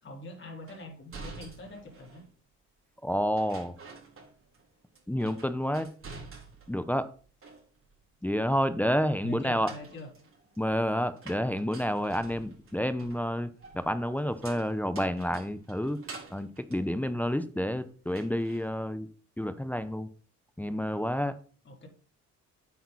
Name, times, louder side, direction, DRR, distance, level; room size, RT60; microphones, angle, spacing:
voice 1, 0.0-2.2 9.2-10.1 21.6-21.9, left 2 dB, 40° left, 1 dB, 3.8 m, -44 dB
sound 1, 0.7-2.3 3.4-4.7 4.9-6.8 7.2-8.0 9.4-17.7 18.1-18.7, right 4 dB, 45° right, 4.6 m, -48 dB
voice 2, 3.0-3.7 5.1-5.9 6.7-7.1 8.2-9.7 10.6-16.0 16.3-19.1 19.4-20.1 20.6-21.3, equal, 5° left, 11 dB, 0.9 m, -29 dB
9.3 x 8.6 x 4.1 m, 0.40 s
cardioid pair, 90°, 30 cm